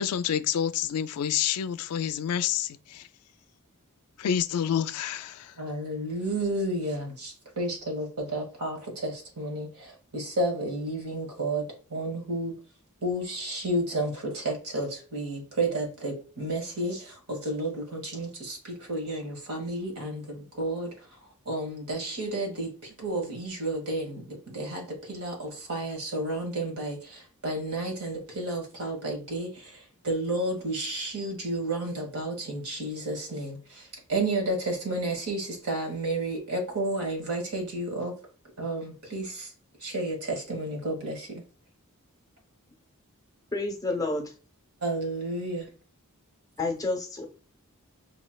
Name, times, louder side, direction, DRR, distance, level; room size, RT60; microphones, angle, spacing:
voice 1, 0.0-3.0 4.2-5.5, left 9 dB, 75° left, 0.3 m, -28 dB
voice 2, 5.6-12.6 13.0-20.9 21.4-38.2 38.6-39.5 39.8-41.4 44.8-45.7, right 1 dB, 85° right, 1.5 m, -32 dB
voice 3, 43.5-44.3 46.6-47.3, left 2 dB, 15° left, 0.8 m, -29 dB
4.9 x 3.1 x 2.3 m
head